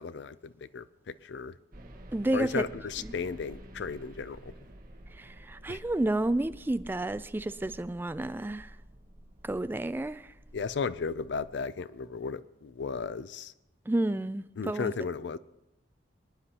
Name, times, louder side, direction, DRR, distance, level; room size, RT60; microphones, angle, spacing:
voice 1, 0.0-1.5 2.3-4.5 5.7-5.8 10.5-13.5 14.6-15.4, left 5 dB, 70° left, 0.4 m, -35 dB
sound 1, 1.7-11.6, right 1 dB, 55° right, 1.5 m, -51 dB
voice 2, 2.1-2.6 5.2-8.7 9.4-10.3 13.9-14.9, right 1 dB, 10° right, 0.3 m, -30 dB
24.5 x 9.8 x 2.9 m
head